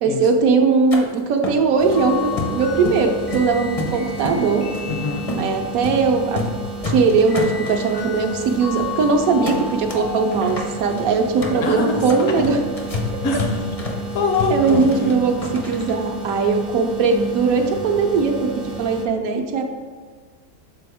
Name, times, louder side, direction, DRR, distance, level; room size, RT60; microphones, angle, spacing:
voice 1, 0.0-4.7 5.4-6.4 6.8-12.6 14.5-19.6, right 4 dB, 70° right, 4 dB, 1.0 m, -19 dB
sound 1, 0.9-1.0 1.4-2.0 2.4-3.1 3.3-4.4 4.7-4.9 5.3-5.5 5.8-6.0 6.3-6.6 6.8-8.1 8.5-8.6 8.8-9.0 9.4-10.0 10.3-16.0, left 2 dB, 40° left, 0.5 m, -29 dB
sound 2, 1.8-19.1, right 3 dB, 55° right, 0.5 m, -32 dB
sound 3, 1.9-5.7 7.3-11.0, left 7 dB, 85° left, 2.4 m, -34 dB
voice 2, 4.9-5.3 11.6-12.0 13.2-13.8 14.1-15.4, left 3 dB, 65° left, 3 dB, 0.9 m, -24 dB
6.8 x 4.1 x 3.4 m, 1.5 s
omnidirectional pair, 1.6 m